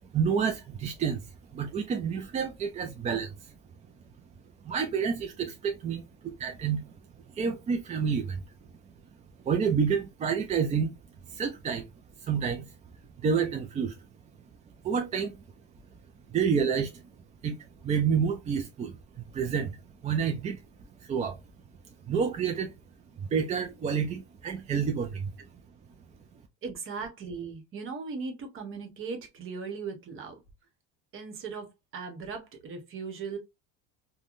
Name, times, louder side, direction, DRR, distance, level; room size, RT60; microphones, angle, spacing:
voice 1, 0.1-3.5 4.6-6.9 7.3-8.4 9.4-10.9 11.3-11.9 12.2-12.7 13.2-14.0 14.8-15.4 16.3-17.0 17.4-20.6 21.0-21.4 22.1-22.7 23.2-25.3, right 6 dB, 25° right, 0.3 m, -29 dB
voice 2, 26.6-30.4 31.1-33.4, right 5 dB, 45° right, 1.0 m, -38 dB
3.4 x 2.2 x 2.4 m
supercardioid pair, 115°, 30 cm